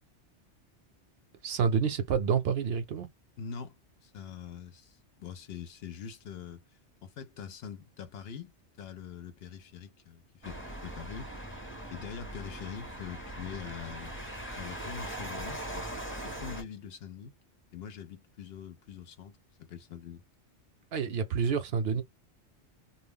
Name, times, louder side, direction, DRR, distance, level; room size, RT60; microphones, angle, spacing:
voice 1, 1.4-3.1 20.9-22.0, right 6 dB, 65° right, 0.8 m, -28 dB
voice 2, 3.4-8.5 8.8-11.3 11.9-14.2 14.6-15.9 16.2-17.3 17.7-20.3, left 7 dB, 65° left, 0.8 m, -44 dB
sound 1, 10.4-16.6, right 1 dB, 15° left, 0.7 m, -40 dB
2.3 x 2.0 x 3.5 m
omnidirectional pair, 1.2 m